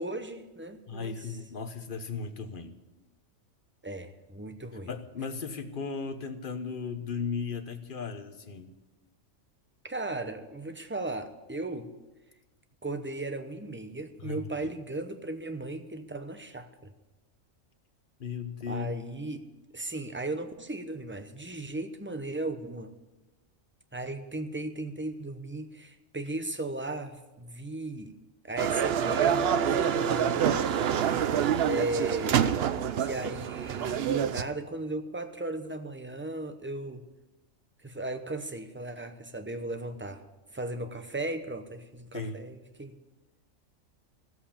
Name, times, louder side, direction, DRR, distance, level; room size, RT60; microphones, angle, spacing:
voice 1, 0.0-1.4 3.8-4.9 9.8-11.9 12.8-16.9 18.7-19.5 19.7-22.9 23.9-28.2 28.4-30.6 31.6-32.7 33.0-37.0 37.8-40.2 40.5-43.0, right 2 dB, 10° right, 8 dB, 0.7 m, -36 dB
voice 2, 0.9-2.8 4.9-8.7 14.2-14.5 18.2-19.0 42.1-42.4, left 5 dB, 45° left, 8 dB, 1.1 m, -36 dB
sound 1, 28.6-34.4, right 8 dB, 60° right, 0.7 m, -26 dB
15.0 x 7.9 x 8.6 m, 1.1 s
omnidirectional pair, 1.4 m